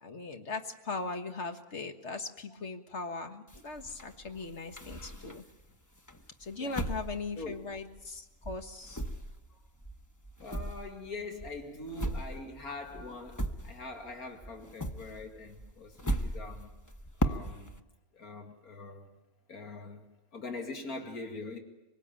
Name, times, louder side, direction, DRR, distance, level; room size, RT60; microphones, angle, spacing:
voice 1, 0.0-5.4 6.4-9.0, left 3 dB, 50° left, 6 dB, 1.9 m, -39 dB
sound 1, 3.5-5.6 6.1-8.2 8.4-14.1 14.4-17.8, right 1 dB, 15° left, 0.9 m, -37 dB
voice 2, 10.4-16.7 17.2-17.8 18.1-19.1 19.5-21.6, left 3 dB, 90° left, 3 dB, 2.7 m, -43 dB
25.0 x 19.0 x 9.0 m, 1.1 s
omnidirectional pair, 1.5 m